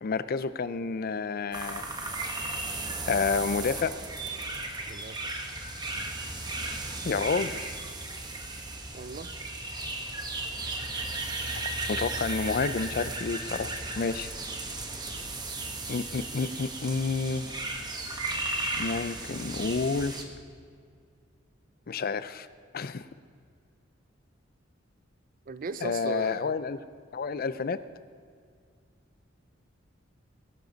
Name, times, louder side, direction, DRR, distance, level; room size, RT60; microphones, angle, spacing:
voice 1, 0.0-1.8 3.1-3.9 7.0-7.7 11.6-14.3 15.9-17.6 18.8-20.2 21.9-22.5 22.7-23.1 25.8-26.8 27.1-27.8, left 4 dB, 50° left, 14 dB, 0.5 m, -30 dB
sound 1, 1.5-20.2, right 2 dB, 20° right, 1.2 m, -35 dB
voice 2, 4.9-5.3 8.9-9.3 25.5-26.5, right 4 dB, 45° right, 14 dB, 0.5 m, -38 dB
21.0 x 12.0 x 4.0 m, 2.2 s
head